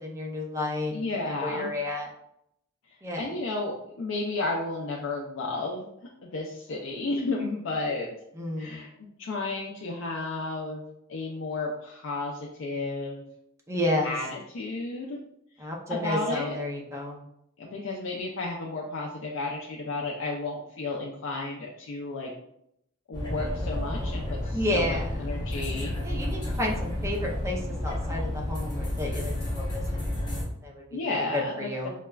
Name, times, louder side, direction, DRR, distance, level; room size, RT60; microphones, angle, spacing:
voice 1, 0.0-0.9 1.4-2.1 3.0-3.3 8.4-8.8 13.7-14.1 15.6-17.2 24.5-25.1 26.0-29.8 30.6-31.9, left 1 dB, 15° right, -1 dB, 0.4 m, -31 dB
voice 2, 0.9-1.7 3.2-5.9 6.2-8.1 8.6-10.8 11.1-13.2 14.0-15.2 15.9-16.6 17.6-22.3 23.1-25.9 30.9-31.7, left 2 dB, 70° left, -1 dB, 0.4 m, -32 dB
sound 1, 23.1-30.4, left 1 dB, 20° left, 0.7 m, -31 dB
4.7 x 2.1 x 2.2 m, 0.78 s
head